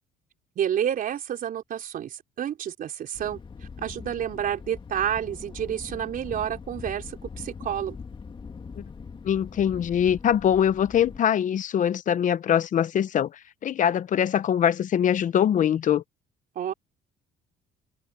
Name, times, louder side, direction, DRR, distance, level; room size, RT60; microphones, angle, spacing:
voice 1, 0.6-3.4 3.8-8.0 16.6-16.7, right 10 dB, 55° right, 4.1 m, -29 dB
Thunder, 3.1-11.2, left 5 dB, 30° left, 2.1 m, -42 dB
voice 2, 9.2-13.3 13.6-16.0, left 9 dB, 50° left, 0.9 m, -23 dB
cardioid pair, 110°, 17 cm